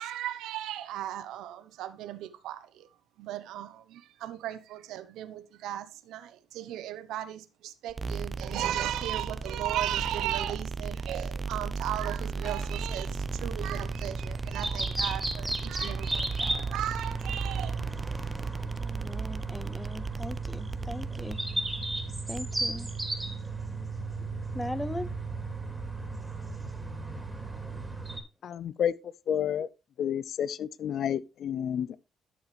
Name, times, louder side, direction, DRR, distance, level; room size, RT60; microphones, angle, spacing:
voice 1, 0.0-2.9 3.2-17.8, right 12 dB, 90° right, 1.0 m, -36 dB
sound 1, 7.9-25.0, right 4 dB, 30° right, 0.7 m, -37 dB
sound 2, 12.6-28.2, right 3 dB, 10° right, 3.1 m, -35 dB
voice 2, 18.8-21.4 22.3-22.9 24.5-25.1, left 1 dB, 10° left, 0.8 m, -38 dB
voice 3, 28.4-28.9 29.3-29.7 30.0-32.0, left 9 dB, 65° left, 0.6 m, -30 dB
12.0 x 7.1 x 3.3 m
cardioid pair, 90°, 0 cm